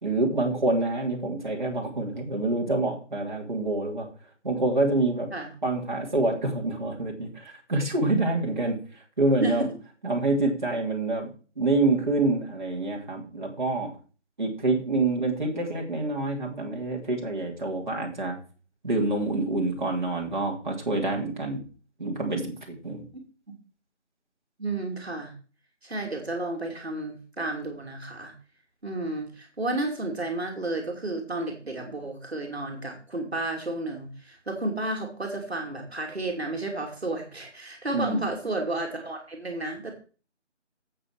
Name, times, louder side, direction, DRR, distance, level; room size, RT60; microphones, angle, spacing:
voice 1, 0.0-4.1 4.4-5.3 5.6-9.7 10.0-13.9 14.4-18.4 18.8-21.6 22.0-23.0 37.9-38.2, right 2 dB, 40° right, -1 dB, 3.1 m, -27 dB
voice 2, 9.4-9.8 24.6-25.3 25.8-28.3 28.8-39.9, right 2 dB, 55° right, 2 dB, 3.0 m, -32 dB
8.6 x 8.3 x 6.0 m, 0.37 s
figure-of-eight pair, 170°, 37 cm